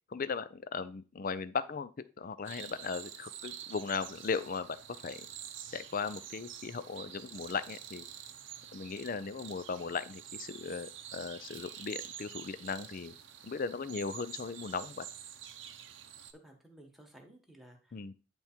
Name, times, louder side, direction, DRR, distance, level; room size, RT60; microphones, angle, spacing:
voice 1, 0.1-1.9 2.2-4.8 5.0-5.3 5.7-8.0 8.7-13.1 13.4-15.1 17.9-18.1, left 5 dB, 45° left, 14 dB, 0.4 m, -37 dB
sound 1, 2.4-16.3, right 9 dB, 60° right, 0.7 m, -48 dB
voice 2, 16.3-18.1, right 1 dB, ahead, 1 dB, 1.2 m, -56 dB
9.4 x 3.6 x 4.4 m, 0.35 s
head